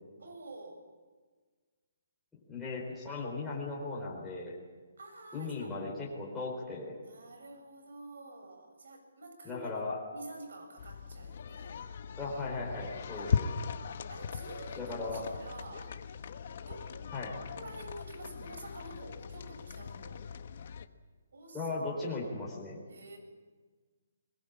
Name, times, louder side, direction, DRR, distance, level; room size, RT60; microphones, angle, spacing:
voice 1, 0.2-0.9 5.0-5.7 7.0-9.8 10.1-11.9 13.2-13.4 14.1-16.0 16.7-17.1 17.6-20.3 21.3-21.7 22.9-23.2, right 2 dB, 70° right, 5 dB, 7.1 m, -48 dB
voice 2, 2.5-4.5 5.3-7.0 9.4-10.0 12.2-13.5 14.8-15.3 17.1-17.4 21.5-22.8, left 3 dB, 5° left, -6 dB, 4.2 m, -37 dB
sound 1, 10.8-20.9, left 6 dB, 45° left, 1.1 m, -39 dB
21.5 x 21.0 x 8.7 m, 1.4 s
hypercardioid pair, 175°, 0 cm